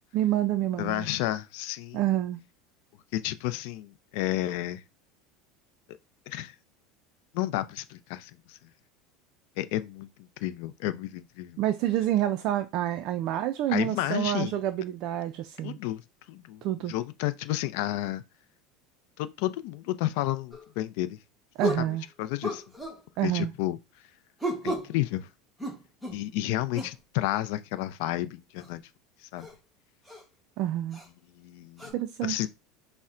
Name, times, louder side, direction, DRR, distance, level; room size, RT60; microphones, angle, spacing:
voice 1, 0.1-1.1 1.9-2.4 11.6-15.8 16.6-16.9 21.6-22.0 23.2-23.5 30.6-31.0 31.9-32.4, right 12 dB, 50° right, 0.3 m, -28 dB
voice 2, 0.8-2.0 3.1-4.8 6.3-6.5 7.3-8.6 9.6-11.6 13.7-14.5 15.6-16.0 16.3-16.6 16.9-18.2 19.2-21.2 21.8-21.9 22.2-22.6 23.2-23.8 24.6-25.3 26.1-28.8 29.3-29.5 31.4-31.9 32.2-32.5, left 15 dB, 65° left, 0.4 m, -31 dB
sound 1, 20.5-20.7 21.6-21.9 22.4-23.0 24.4-24.9 25.6-26.2 26.7-27.0 28.6-28.7 29.4-29.5 30.1-30.2 30.9-31.1 31.8-31.9, equal, 5° right, 0.9 m, -33 dB
5.5 x 2.1 x 2.4 m
supercardioid pair, 135°, 0 cm